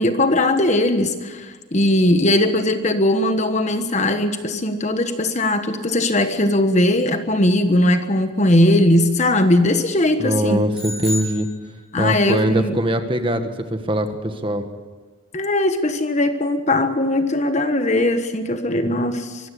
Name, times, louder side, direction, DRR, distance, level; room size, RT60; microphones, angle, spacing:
voice 1, 0.0-10.6 11.9-12.8 15.3-19.5, left 1 dB, 35° left, 8 dB, 1.3 m, -19 dB
voice 2, 10.2-11.5 12.0-14.7, right 1 dB, 25° right, 7 dB, 1.6 m, -22 dB
sound 1, 10.7-12.2, left 1 dB, 5° right, 7.7 m, -31 dB
24.0 x 15.5 x 8.4 m, 1.4 s
head